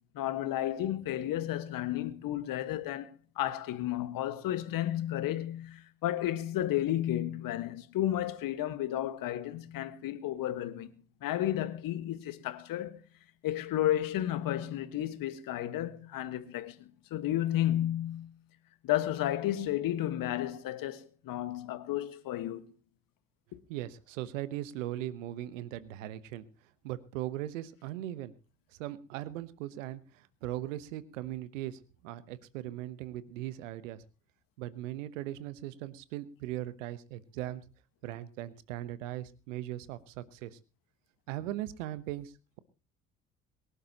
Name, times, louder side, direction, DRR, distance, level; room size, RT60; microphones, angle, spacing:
voice 1, 0.2-3.1 3.4-10.9 11.2-13.0 13.4-18.3 18.8-22.6 23.5-23.6, left 13 dB, 60° left, 1.6 m, -32 dB
voice 2, 23.7-26.5 26.8-28.3 28.8-34.0 34.6-37.6 38.0-40.6 41.3-42.6, right 14 dB, 80° right, 1.1 m, -39 dB
23.5 x 11.5 x 2.9 m
hypercardioid pair, 55°, 38 cm